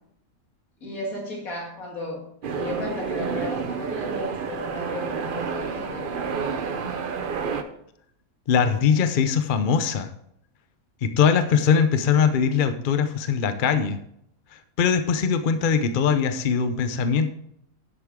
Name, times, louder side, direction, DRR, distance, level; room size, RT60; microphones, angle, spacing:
voice 1, 0.8-2.3 2.5-6.3, left 1 dB, 80° left, 0 dB, 2.6 m, -34 dB
sound 1, 2.4-7.6, right 5 dB, 45° right, 0.8 m, -29 dB
voice 2, 8.5-10.1 11.0-14.0 14.5-17.3, left 6 dB, 50° left, 9 dB, 0.7 m, -21 dB
11.0 x 8.0 x 3.7 m, 0.72 s
omnidirectional pair, 1.5 m